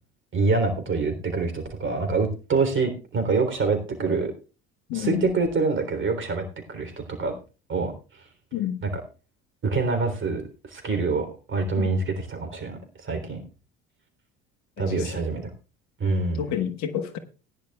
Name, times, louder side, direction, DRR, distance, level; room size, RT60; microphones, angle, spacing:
voice 1, 0.3-4.3 4.9-7.3 7.7-7.9 8.8-9.0 9.6-13.4 14.8-15.5 16.0-16.4, right 4 dB, 40° right, 3.6 m, -26 dB
voice 2, 4.9-5.3 8.5-8.8 11.8-12.0 14.8-15.1 16.4-17.2, left 10 dB, 60° left, 1.4 m, -29 dB
18.5 x 10.5 x 2.4 m
hypercardioid pair, 65°, 32 cm